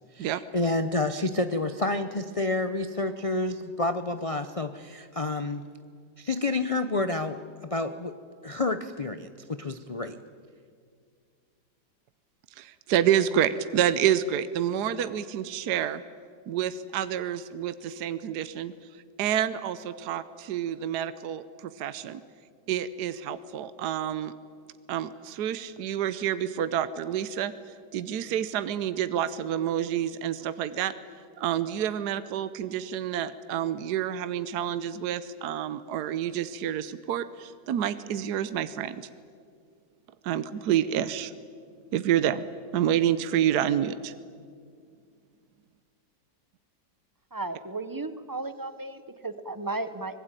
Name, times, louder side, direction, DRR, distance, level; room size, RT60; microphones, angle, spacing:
voice 1, 0.1-5.6 6.2-7.4 7.7-8.1 8.4-10.2, left 2 dB, 65° left, 9 dB, 0.3 m, -29 dB
voice 2, 12.5-16.0 16.5-18.7 19.2-22.2 22.7-24.3 24.9-27.5 27.9-30.9 31.4-39.1 40.2-41.3 41.9-42.4 42.7-44.1, right 10 dB, 70° right, 13 dB, 1.3 m, -28 dB
voice 3, 47.3-50.2, right 2 dB, 20° right, 12 dB, 0.5 m, -34 dB
24.5 x 20.5 x 9.0 m, 2.2 s
omnidirectional pair, 1.9 m